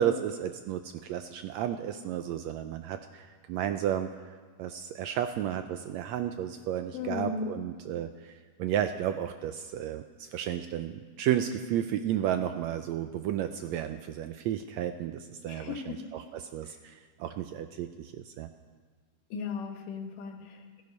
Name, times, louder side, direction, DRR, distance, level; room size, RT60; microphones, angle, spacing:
voice 1, 0.0-4.1 4.6-18.5, right 10 dB, 80° right, 8 dB, 1.6 m, -32 dB
voice 2, 6.9-7.5 15.5-16.0 16.6-16.8 19.3-20.8, left 5 dB, 90° left, 4 dB, 3.0 m, -36 dB
16.0 x 14.5 x 5.4 m, 1.5 s
omnidirectional pair, 3.6 m